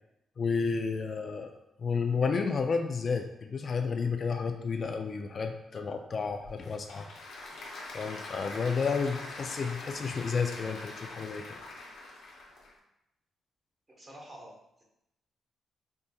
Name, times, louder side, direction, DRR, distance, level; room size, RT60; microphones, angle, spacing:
voice 1, 0.4-1.5 1.8-7.1 7.9-11.6, left 5 dB, 50° left, 5 dB, 0.3 m, -31 dB
Applause / Crowd, 6.3-12.7, left 2 dB, 80° left, 0.7 m, -43 dB
voice 2, 13.9-14.8, right 1 dB, 35° right, -2 dB, 1.2 m, -49 dB
4.5 x 2.7 x 2.3 m, 0.86 s
cardioid pair, 70°, 0 cm